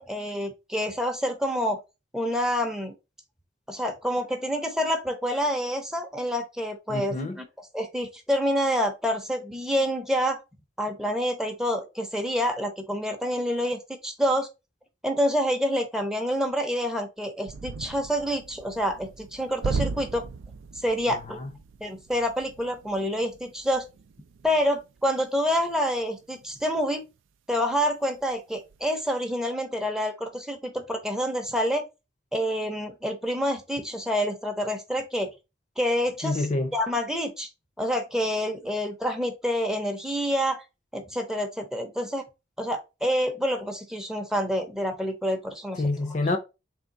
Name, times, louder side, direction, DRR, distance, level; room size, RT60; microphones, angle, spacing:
voice 1, 0.0-1.8 2.1-2.9 3.7-7.4 7.7-10.4 10.8-14.5 15.0-20.3 20.8-21.4 21.8-23.8 24.4-27.0 27.5-31.8 32.3-35.3 35.8-36.5 36.7-37.5 37.8-40.6 40.9-42.2 42.6-45.8, equal, 5° right, 0.6 m, -27 dB
voice 2, 6.9-7.4 21.1-21.5 36.2-36.7 45.8-46.4, left 2 dB, 40° left, 0.5 m, -28 dB
sound 1, 17.5-27.2 27.5-27.7 28.1-28.9, right 4 dB, 85° right, 0.4 m, -38 dB
3.5 x 3.4 x 3.9 m
head